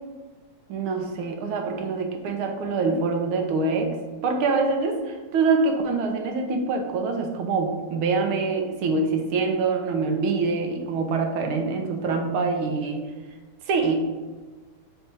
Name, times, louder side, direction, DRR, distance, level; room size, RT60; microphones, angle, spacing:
voice 1, 0.7-3.9 4.2-13.1 13.6-14.0, right 4 dB, 75° right, 3 dB, 1.6 m, -25 dB
4.6 x 4.2 x 5.4 m, 1.3 s
omnidirectional pair, 2.4 m